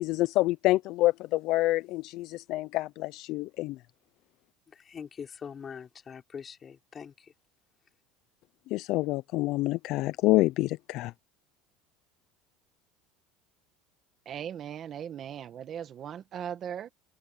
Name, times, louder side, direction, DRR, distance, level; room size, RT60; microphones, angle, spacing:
voice 1, 0.0-3.8 8.7-11.1, left 18 dB, 55° left, 0.4 m, -27 dB
voice 2, 4.7-7.3, left 7 dB, 25° left, 5.6 m, -43 dB
voice 3, 14.2-16.9, right 9 dB, 35° right, 1.3 m, -38 dB
open air
cardioid pair, 145°, 0 cm